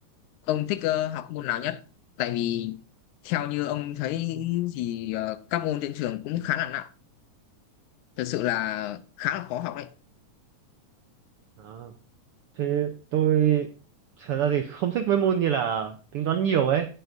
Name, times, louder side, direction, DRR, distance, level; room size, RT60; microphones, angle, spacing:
voice 1, 0.5-1.8 2.2-2.8 3.2-6.9 8.2-9.9, left 13 dB, 85° left, 2.1 m, -29 dB
voice 2, 11.6-11.9 12.6-13.7 14.2-16.9, right 9 dB, 85° right, 1.2 m, -24 dB
16.5 x 6.8 x 2.5 m
omnidirectional pair, 3.4 m